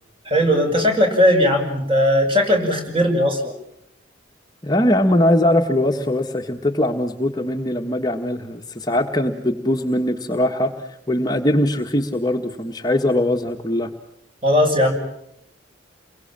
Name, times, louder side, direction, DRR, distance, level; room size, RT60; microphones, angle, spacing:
voice 1, 0.2-3.5 14.4-14.9, equal, 30° right, 3 dB, 6.6 m, -18 dB
voice 2, 4.6-13.9, left 1 dB, 20° left, 3 dB, 1.5 m, -21 dB
29.5 x 23.0 x 7.5 m, 0.78 s
head